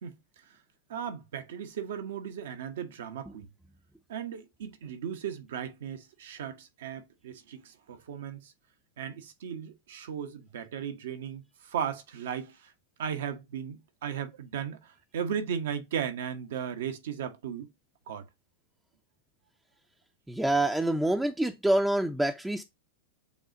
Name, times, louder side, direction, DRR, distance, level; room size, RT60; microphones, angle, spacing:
voice 1, 0.9-3.5 4.1-8.5 9.0-12.7 13.0-17.7 18.1-18.3, right 8 dB, 70° right, 1.0 m, -36 dB
voice 2, 20.3-22.6, right 1 dB, 5° right, 0.5 m, -26 dB
6.9 x 2.4 x 2.6 m
hypercardioid pair, 100°, 0 cm